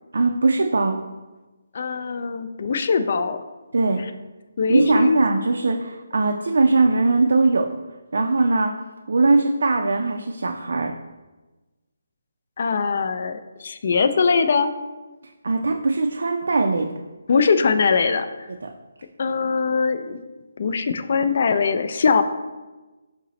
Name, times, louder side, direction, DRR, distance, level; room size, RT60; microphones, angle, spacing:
voice 1, 0.1-1.0 3.7-4.0 4.7-7.7 8.1-8.7 9.1-10.9 15.4-16.9 18.6-18.7, right 3 dB, 70° right, 3 dB, 0.3 m, -20 dB
voice 2, 1.7-3.4 4.6-5.2 12.6-14.7 17.3-18.3 19.2-20.2 20.6-22.2, left 5 dB, 50° left, 9 dB, 0.3 m, -21 dB
5.5 x 2.0 x 4.0 m, 1.2 s
hypercardioid pair, 160°, 0 cm